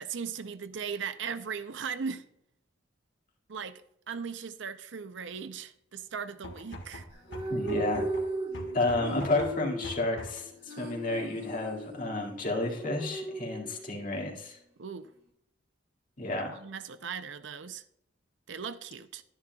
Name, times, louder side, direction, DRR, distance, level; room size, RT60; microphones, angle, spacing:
voice 1, 0.0-2.3 3.5-7.1 14.8-15.1 16.5-17.8 18.5-19.2, right 6 dB, 70° right, 0.6 m, -38 dB
sound 1, 6.3-10.5, equal, 65° left, 1.6 m, -44 dB
sound 2, 7.1-14.1, right 1 dB, 30° right, 1.9 m, -37 dB
voice 2, 7.5-8.1 8.7-14.6 16.2-16.6, left 2 dB, 45° left, 2.1 m, -31 dB
11.5 x 10.5 x 2.3 m
head